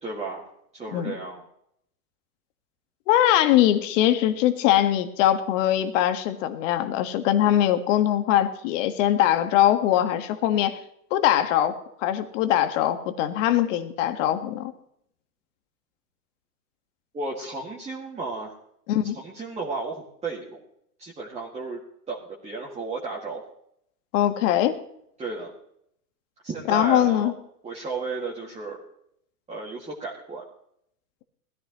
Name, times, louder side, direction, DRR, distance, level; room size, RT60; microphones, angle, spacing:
voice 1, 0.0-1.5 17.1-18.5 19.0-20.6 21.0-21.8 22.1-23.4 25.2-25.5 26.4-27.3 27.6-28.8 29.5-30.5, right 3 dB, 15° right, -3 dB, 2.2 m, -34 dB
voice 2, 3.1-10.8 11.1-14.7 18.9-19.2 24.1-24.8 26.7-27.3, left 12 dB, 50° left, 8 dB, 1.8 m, -22 dB
20.0 x 14.5 x 3.1 m, 0.72 s
hypercardioid pair, 130°, 47 cm